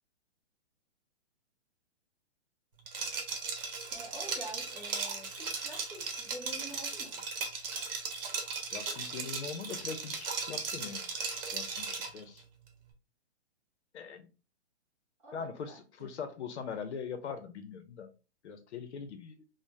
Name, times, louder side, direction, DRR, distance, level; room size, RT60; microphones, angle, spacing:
Liquid, 2.9-12.2, right 4 dB, 55° right, 0.8 m, -37 dB
voice 1, 3.9-7.2 15.2-16.1, right 1 dB, 10° right, 0.4 m, -47 dB
voice 2, 8.7-11.1 11.5-12.4 13.9-14.3 15.3-18.1 18.4-19.4, left 6 dB, 75° left, 0.7 m, -41 dB
3.1 x 2.1 x 2.5 m
hypercardioid pair, 150°, 34 cm